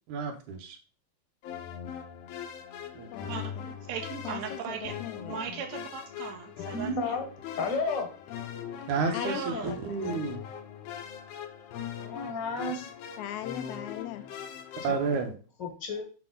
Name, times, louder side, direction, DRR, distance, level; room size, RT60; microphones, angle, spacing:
voice 1, 0.1-0.8 2.9-3.3 8.9-10.4 14.8-15.3, right 4 dB, 90° right, 5 dB, 2.6 m, -31 dB
sound 1, 1.4-15.2, left 8 dB, 70° left, 1.8 m, -41 dB
voice 2, 3.1-3.7 4.2-5.6 9.1-10.0 13.2-14.3, left 12 dB, 85° left, 10 dB, 2.1 m, -39 dB
voice 3, 3.9-4.9 5.3-7.2 9.1-9.7, right 7 dB, 70° right, 3 dB, 2.1 m, -38 dB
voice 4, 6.7-7.2 7.6-8.1 12.0-12.9 14.9-15.0 15.6-16.0, left 3 dB, 50° left, 3 dB, 1.5 m, -31 dB
6.8 x 6.0 x 3.8 m, 0.38 s
omnidirectional pair, 3.4 m